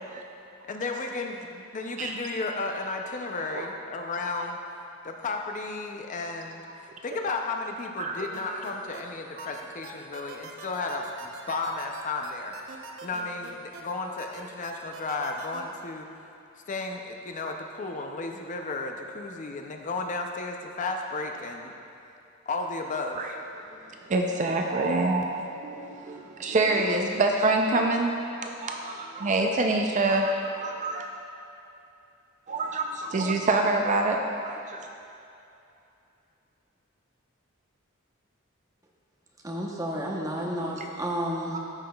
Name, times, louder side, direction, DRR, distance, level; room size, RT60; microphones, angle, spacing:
voice 1, 0.7-4.6 5.0-12.5 13.0-16.1 16.7-21.7 22.5-23.2, left 3 dB, 40° left, 3 dB, 0.5 m, -33 dB
voice 2, 8.0-8.6 9.4-9.5 23.1-23.3 24.0-31.1 32.5-34.8 40.7-40.8, right 2 dB, 35° right, 2 dB, 0.4 m, -26 dB
sound 1, 8.3-9.0 9.4-13.8 14.2-15.6, right 4 dB, 85° right, 0.7 m, -43 dB
voice 3, 39.4-41.6, equal, 15° right, -2 dB, 0.9 m, -31 dB
13.5 x 5.7 x 2.3 m, 2.7 s
head